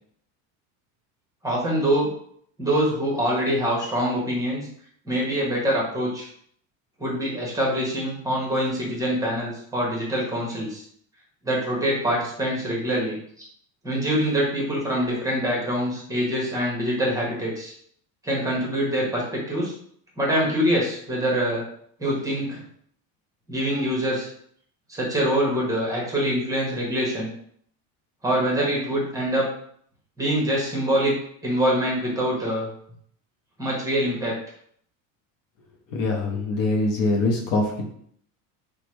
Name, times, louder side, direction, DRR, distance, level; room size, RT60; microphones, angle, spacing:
voice 1, 1.4-2.1 2.6-4.6 5.0-6.3 7.0-10.8 11.4-13.2 13.8-17.7 18.2-19.7 20.2-21.7 22.0-22.6 23.5-24.3 24.9-27.3 28.2-29.5 30.2-31.2 31.4-32.7 33.6-34.3, equal, 10° right, -4 dB, 0.9 m, -24 dB
voice 2, 35.9-37.9, left 2 dB, 55° left, 0 dB, 0.7 m, -23 dB
3.0 x 2.1 x 3.0 m, 0.64 s
supercardioid pair, 125°, 40 cm